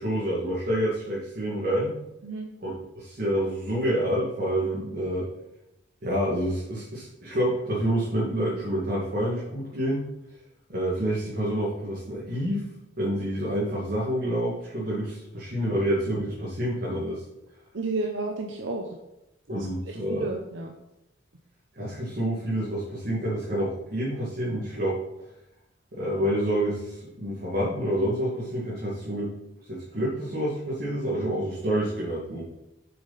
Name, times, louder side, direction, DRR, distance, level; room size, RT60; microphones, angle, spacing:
voice 1, 0.0-2.0 2.6-5.3 6.0-10.1 10.7-12.7 13.0-17.2 19.5-20.3 21.8-25.0 25.9-29.4 29.7-32.4, right 1 dB, 50° right, -6 dB, 2.2 m, -28 dB
voice 2, 17.7-19.0 19.5-20.7, right 2 dB, 80° right, 3 dB, 0.8 m, -32 dB
7.9 x 6.8 x 4.1 m, 0.89 s
head